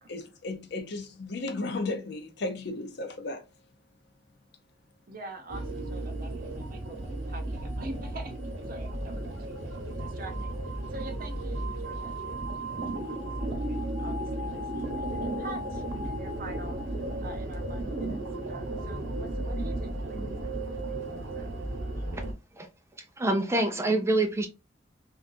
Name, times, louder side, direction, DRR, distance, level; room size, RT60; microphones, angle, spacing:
voice 1, 0.1-3.4, left 2 dB, 60° left, 0.7 m, -34 dB
voice 2, 5.1-8.4 8.7-9.6 10.0-18.2 18.5-21.5, right 2 dB, 50° right, 0.7 m, -46 dB
sound 1, 5.5-22.3, right 1 dB, 85° right, 0.9 m, -34 dB
voice 3, 23.2-24.5, right 2 dB, 15° right, 0.4 m, -26 dB
3.6 x 2.4 x 2.6 m
head